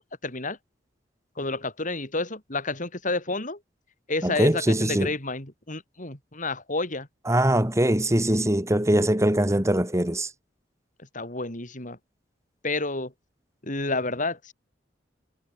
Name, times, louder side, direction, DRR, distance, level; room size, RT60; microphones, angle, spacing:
voice 1, 0.2-0.6 1.4-3.6 4.1-7.1 11.1-12.0 12.6-13.1 13.6-14.5, left 2 dB, 45° left, 6.3 m, -30 dB
voice 2, 4.2-5.1 7.3-10.3, right 1 dB, 15° right, 2.5 m, -22 dB
head